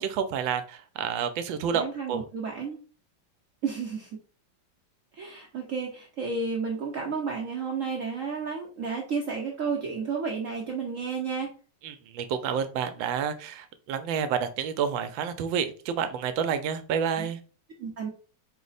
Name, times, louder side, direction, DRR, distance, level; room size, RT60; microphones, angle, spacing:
voice 1, 0.0-2.2 11.8-17.4, right 7 dB, 80° right, 10 dB, 1.3 m, -29 dB
voice 2, 1.7-2.8 3.6-4.1 5.1-11.5 17.2-17.3 17.8-18.1, right 5 dB, 60° right, -1 dB, 0.8 m, -32 dB
4.8 x 2.1 x 4.0 m, 0.37 s
omnidirectional pair, 2.1 m